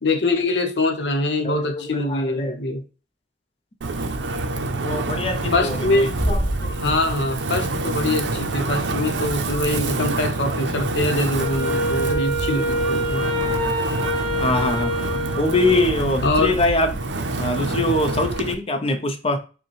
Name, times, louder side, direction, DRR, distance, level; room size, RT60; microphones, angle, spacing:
voice 1, 0.0-2.8 5.5-6.2 6.8-13.3 16.2-16.5, left 2 dB, 75° left, 0.7 m, -23 dB
voice 2, 1.4-2.6 4.8-6.9 14.4-14.9 15.4-17.0 17.4-19.4, left 2 dB, 35° left, 0.6 m, -23 dB
Wind, 3.8-18.5, right 2 dB, 80° right, 0.5 m, -27 dB
Bass drum, 6.2-7.6, equal, 5° left, 0.8 m, -26 dB
Wind instrument woodwind instrument, 11.4-16.0, equal, 25° right, 1.2 m, -26 dB
5.0 x 2.2 x 3.1 m
head